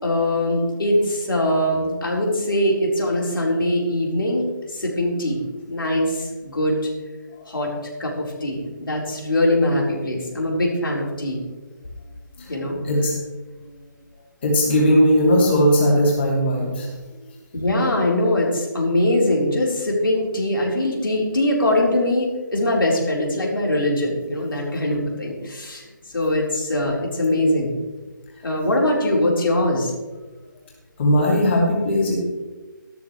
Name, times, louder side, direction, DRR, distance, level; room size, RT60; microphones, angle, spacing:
voice 1, 0.0-6.9 7.5-7.7 8.0-11.4 12.5-12.8 17.5-25.8 26.1-27.7 28.4-29.9, left 1 dB, 85° left, -2 dB, 4.4 m, -22 dB
voice 2, 14.4-16.9 31.0-32.2, equal, 30° left, -3 dB, 2.9 m, -18 dB
14.0 x 13.0 x 3.3 m, 1.2 s
hypercardioid pair, 170°, 11 cm